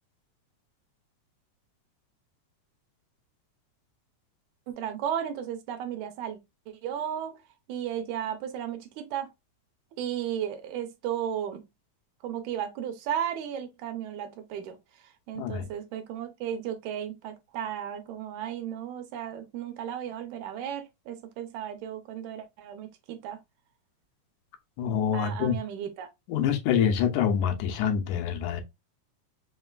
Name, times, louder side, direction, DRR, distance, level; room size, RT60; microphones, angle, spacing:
voice 1, 4.7-6.4 6.7-7.4 7.7-9.3 10.0-11.6 12.2-14.8 15.0-23.4 25.1-26.1, right 9 dB, 80° right, 2.0 m, -34 dB
voice 2, 15.4-15.7 24.8-25.6 26.3-28.6, left 8 dB, 85° left, 2.2 m, -26 dB
5.1 x 3.2 x 2.3 m
omnidirectional pair, 3.4 m